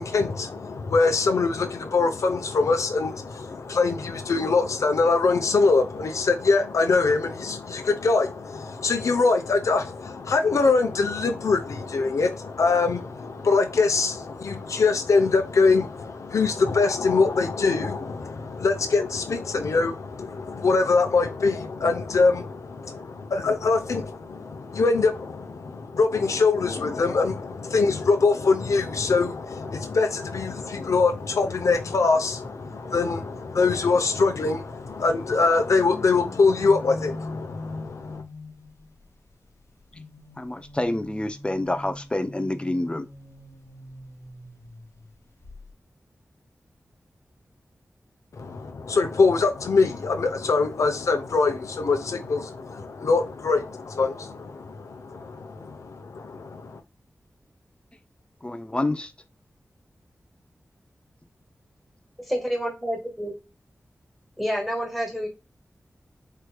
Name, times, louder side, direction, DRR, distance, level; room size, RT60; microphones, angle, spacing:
voice 1, 0.0-38.2 48.3-56.8, left 4 dB, 90° left, 0.7 m, -23 dB
sound 1, 31.4-35.0 35.6-38.9 39.9-45.1 45.4-45.7, left 2 dB, 65° left, 1.3 m, -42 dB
voice 2, 40.4-43.1 58.4-59.1, left 1 dB, 20° left, 0.5 m, -27 dB
voice 3, 62.3-63.3 64.4-65.3, equal, ahead, 1.6 m, -28 dB
4.6 x 3.2 x 2.2 m
wide cardioid pair, 75°, 5 cm